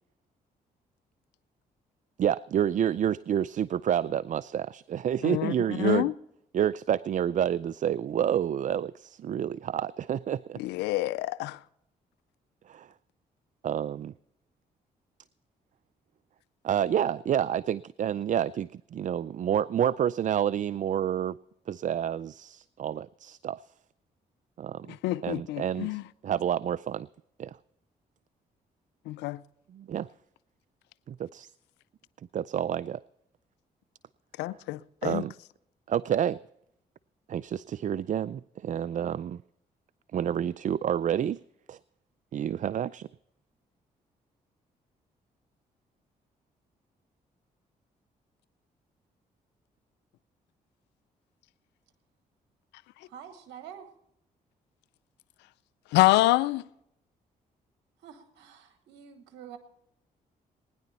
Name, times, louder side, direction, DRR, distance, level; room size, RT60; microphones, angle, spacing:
voice 1, 2.2-6.1 6.5-10.6 12.7-12.9 13.6-14.1 16.6-21.4 21.7-23.6 24.6-24.9 25.2-27.1 27.4-27.6 29.7-30.1 31.1-31.5 32.3-33.0 35.0-35.3 35.9-36.4 37.3-39.4 40.1-41.4 41.7-41.8 42.3-43.1, right 9 dB, 45° right, 0.4 m, -29 dB
voice 2, 5.2-5.5 5.8-6.1 10.6-11.6 24.9-26.0 29.1-29.4 34.4-35.2 55.9-56.6, left 18 dB, 90° left, 0.5 m, -26 dB
voice 3, 53.0-53.9 58.0-59.6, right 8 dB, 90° right, 1.2 m, -47 dB
20.0 x 10.0 x 4.1 m
supercardioid pair, 55°, 17 cm